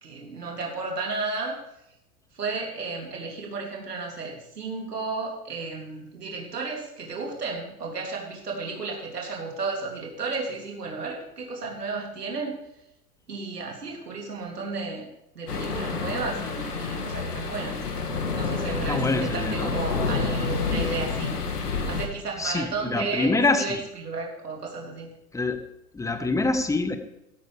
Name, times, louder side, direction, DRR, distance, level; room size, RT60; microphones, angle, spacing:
voice 1, 0.0-1.6 2.3-12.6 13.3-15.1 15.3-17.9 18.3-21.4 21.9-25.1, right 3 dB, 85° right, -1 dB, 3.2 m, -33 dB
sound 1, 15.5-22.1, left 4 dB, 85° left, 2.4 m, -29 dB
voice 2, 18.9-19.7 22.4-23.8 25.3-25.6 25.9-27.0, left 3 dB, 5° left, 9 dB, 1.2 m, -25 dB
16.0 x 13.5 x 3.5 m, 0.84 s
hypercardioid pair, 110°, 46 cm